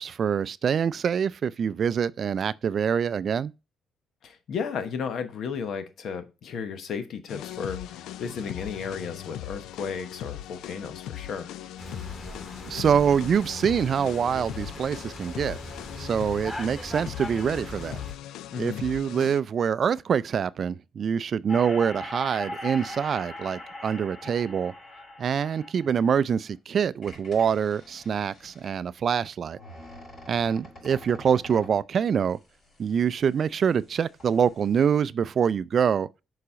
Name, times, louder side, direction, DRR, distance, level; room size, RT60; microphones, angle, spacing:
voice 1, 0.0-3.5 12.6-15.6 16.0-18.0 18.6-24.7 25.2-29.6 30.3-32.4 32.8-36.1, right 7 dB, 55° right, 0.3 m, -25 dB
voice 2, 4.2-11.5 18.5-18.8, left 6 dB, 70° left, 1.1 m, -34 dB
sound 1, 7.3-19.4, left 12 dB, 85° left, 0.4 m, -39 dB
sound 2, 11.8-18.1, left 1 dB, 20° left, 3.0 m, -40 dB
sound 3, 21.5-26.5 27.0-28.8 29.5-31.8 32.4-33.9 34.1-34.8, left 1 dB, 50° left, 4.8 m, -42 dB
6.8 x 4.2 x 4.9 m
cardioid pair, 90°, 0 cm